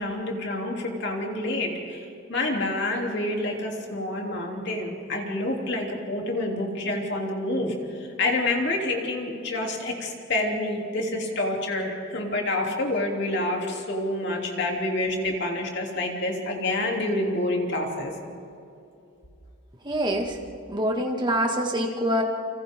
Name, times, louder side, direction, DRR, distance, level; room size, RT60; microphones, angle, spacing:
voice 1, 0.0-2.0 2.3-18.1, left 2 dB, 60° left, 0 dB, 3.3 m, -28 dB
voice 2, 19.8-20.4 20.7-22.2, equal, 25° right, 1 dB, 2.2 m, -25 dB
30.0 x 25.5 x 3.8 m, 2.6 s
head